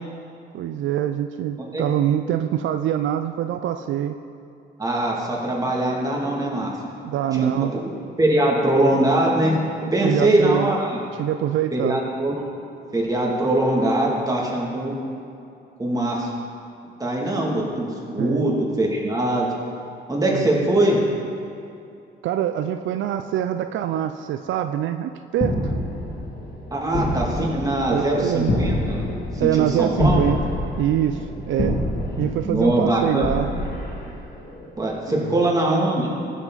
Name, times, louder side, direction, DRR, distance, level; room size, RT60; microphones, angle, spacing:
voice 1, 0.5-4.2 7.0-7.7 10.0-10.8 11.2-12.0 18.2-18.5 20.3-20.7 22.2-25.7 27.9-28.5 29.4-30.4 30.8-31.8 32.2-33.5 35.1-35.4, right 11 dB, 75° right, 8 dB, 0.4 m, -24 dB
voice 2, 4.8-6.7 7.3-7.8 8.2-9.6 9.9-11.0 11.7-12.4 12.9-14.9 15.8-16.3 17.0-17.9 18.1-19.5 20.1-21.0 26.7-29.0 29.4-30.2 32.4-33.3 34.8-36.1, right 1 dB, 20° right, -3 dB, 2.4 m, -22 dB
sound 1, 25.4-34.7, left 1 dB, 45° left, 2.1 m, -27 dB
15.5 x 7.2 x 4.0 m, 2.6 s
cardioid pair, 90°, 20 cm